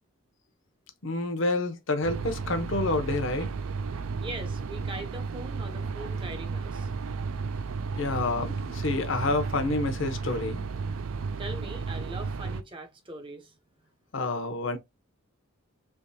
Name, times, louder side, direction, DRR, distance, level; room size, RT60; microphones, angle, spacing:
voice 1, 1.0-3.5 8.0-10.7 14.1-14.8, left 2 dB, 60° left, 0.8 m, -28 dB
sound 1, 2.0-12.6, right 4 dB, 75° right, 0.4 m, -33 dB
voice 2, 4.2-6.9 11.4-13.5, right 1 dB, 25° right, 0.6 m, -41 dB
3.5 x 3.0 x 2.6 m
head